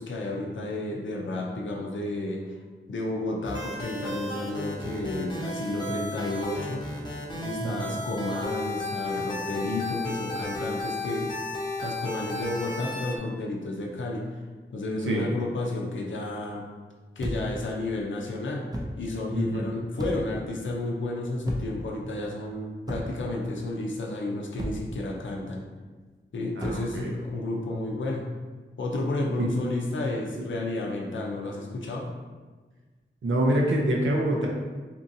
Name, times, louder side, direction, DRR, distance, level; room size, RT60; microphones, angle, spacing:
voice 1, 0.0-2.6 2.9-6.8 7.4-11.3 11.8-14.4 14.7-16.6 17.2-18.7 19.0-25.6 26.3-28.3 28.8-32.1, left 2 dB, 70° left, -2 dB, 0.5 m, -31 dB
sound 1, 3.4-13.2, left 2 dB, 20° left, 0.7 m, -34 dB
voice 2, 7.6-8.0 15.0-15.3 19.3-19.7 26.5-27.1 29.4-29.6 30.3-30.5 33.2-34.5, right 1 dB, 70° right, -1 dB, 0.5 m, -26 dB
sound 2, 17.2-17.6 18.7-19.0 20.0-20.4 21.4-21.9 22.9-23.3 24.6-25.0 26.6-26.9, equal, 20° right, 0.5 m, -34 dB
2.9 x 2.6 x 2.6 m, 1.4 s
wide cardioid pair, 50°, 21 cm